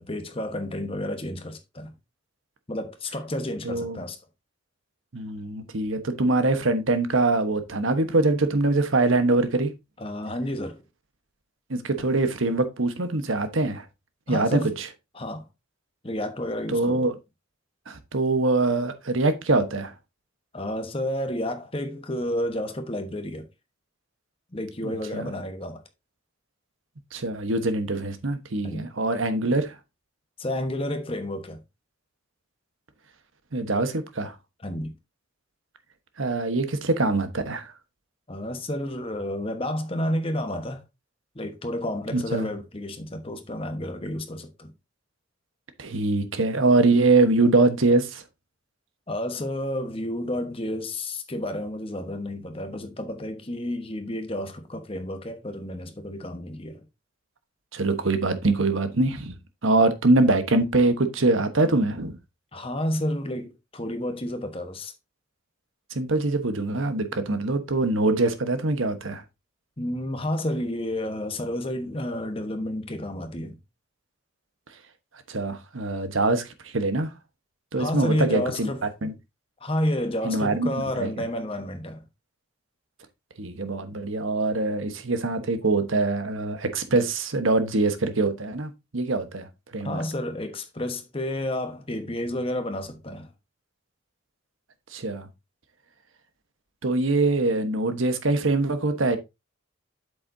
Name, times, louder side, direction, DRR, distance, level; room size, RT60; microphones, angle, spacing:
voice 1, 0.0-1.9 2.7-4.2 10.0-10.8 14.3-14.7 15.1-15.4 16.0-17.0 20.5-23.5 24.5-25.8 28.6-28.9 30.4-31.6 34.6-34.9 38.3-40.8 41.3-44.7 49.1-56.8 62.5-64.9 69.8-73.6 77.8-78.8 79.6-82.0 89.8-93.3, left 1 dB, 25° left, 1.1 m, -30 dB
voice 2, 3.6-4.0 5.1-9.7 11.7-13.9 14.3-14.9 16.7-17.1 17.9-19.9 24.8-25.3 27.1-29.8 33.5-34.3 36.2-37.7 42.1-42.5 45.8-48.2 57.7-59.4 59.6-62.2 65.9-69.2 75.3-77.1 77.7-78.7 79.0-79.1 80.2-80.7 81.0-81.1 83.4-89.5 89.7-90.0 94.9-95.3 96.8-99.2, right 2 dB, 75° right, 1.2 m, -23 dB
8.2 x 6.9 x 2.7 m
head